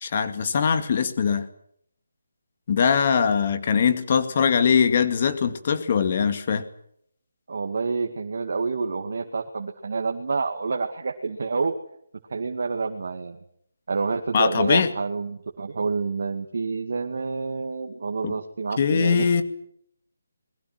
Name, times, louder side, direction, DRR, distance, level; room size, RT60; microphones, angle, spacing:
voice 1, 0.0-1.5 2.7-6.6 14.3-14.9 18.2-18.3 18.8-19.4, left 6 dB, 30° left, 10 dB, 2.2 m, -21 dB
voice 2, 7.5-11.7 12.3-13.4 13.9-19.3, right 4 dB, 50° right, 4 dB, 2.2 m, -28 dB
29.0 x 21.5 x 6.2 m, 0.68 s
hypercardioid pair, 175°, 0 cm